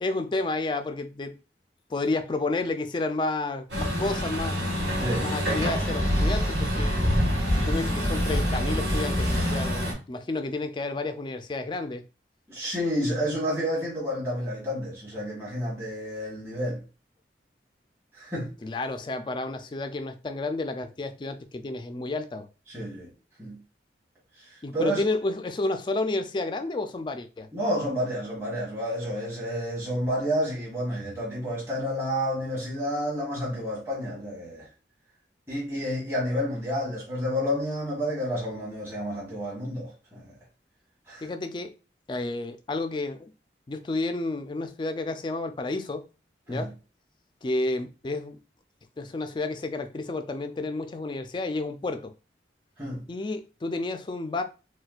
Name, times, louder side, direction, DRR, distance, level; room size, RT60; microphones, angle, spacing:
voice 1, 0.0-1.4 1.9-4.6 5.2-6.9 7.5-12.0 18.6-22.5 24.6-27.5 41.2-41.7 42.1-43.3 43.7-46.1 46.5-46.7 47.4-48.4 49.0-52.1 53.1-54.4, left 2 dB, 25° left, 0.3 m, -31 dB
Truck, 3.7-9.9, equal, 80° right, 1.4 m, -26 dB
voice 2, 5.0-5.3 12.5-16.8 18.1-18.5 22.7-23.1 23.4-23.6 24.5-25.0 27.5-34.7 35.5-40.3 41.1-41.3 46.5-46.7 52.8-53.0, equal, 15° right, 1.2 m, -30 dB
4.2 x 2.2 x 2.3 m
head